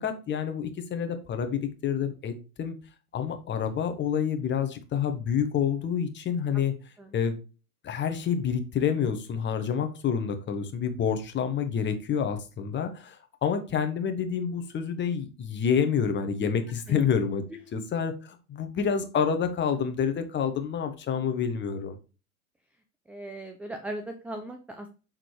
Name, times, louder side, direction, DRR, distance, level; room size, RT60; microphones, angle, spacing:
voice 1, 0.0-2.3 2.6-2.7 3.1-6.7 7.1-7.4 7.8-17.4 17.7-22.0, left 7 dB, 25° left, 7 dB, 1.2 m, -28 dB
voice 2, 23.1-24.9, right 1 dB, 5° right, 5 dB, 0.4 m, -38 dB
6.3 x 3.9 x 4.6 m, 0.32 s
hypercardioid pair, 90°, 44 cm